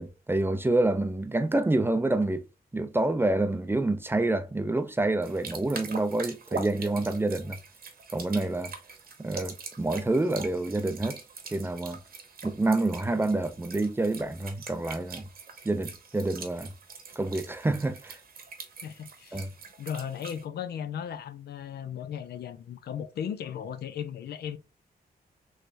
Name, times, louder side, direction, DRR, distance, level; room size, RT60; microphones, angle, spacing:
voice 1, 0.0-2.4 2.7-7.6 8.1-8.7 9.2-11.2 11.5-12.0 12.4-15.3 15.6-16.7 17.2-18.2 19.3-19.5, right 2 dB, 15° right, 0.4 m, -27 dB
sound 1, 5.2-20.4, right 5 dB, 65° right, 0.8 m, -43 dB
voice 2, 18.8-19.4 19.8-24.6, left 8 dB, 85° left, 0.5 m, -36 dB
3.3 x 3.1 x 2.5 m
cardioid pair, 90°, 16 cm